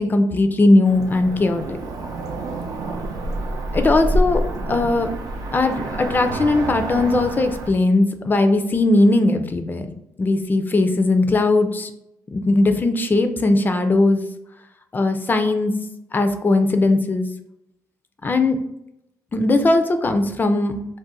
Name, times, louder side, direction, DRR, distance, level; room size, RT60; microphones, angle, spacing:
voice 1, 0.0-1.6 3.7-4.4 4.7-5.1 5.5-9.9 10.2-11.9 12.3-14.2 14.9-15.8 16.1-17.3 18.2-18.6 19.3-20.8, left 2 dB, 25° left, 7 dB, 0.4 m, -18 dB
Cricket / Motor vehicle (road), 0.8-7.7, right 1 dB, 60° right, 0.5 m, -27 dB
2.5 x 2.1 x 3.9 m, 0.82 s
cardioid pair, 95°, 7 cm